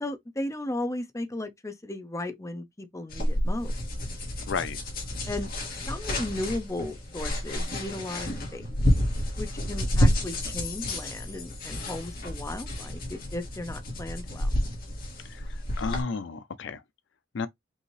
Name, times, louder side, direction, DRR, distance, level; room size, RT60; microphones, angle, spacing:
voice 1, 0.0-3.7 5.3-5.5 5.9-8.7 9.4-14.5, left 1 dB, 15° left, 0.7 m, -35 dB
sound 1, 3.1-16.0, equal, 50° left, 2.0 m, -29 dB
voice 2, 4.5-4.8 15.2-16.8 17.3-17.5, left 4 dB, 65° left, 0.5 m, -32 dB
5.4 x 2.8 x 3.1 m
head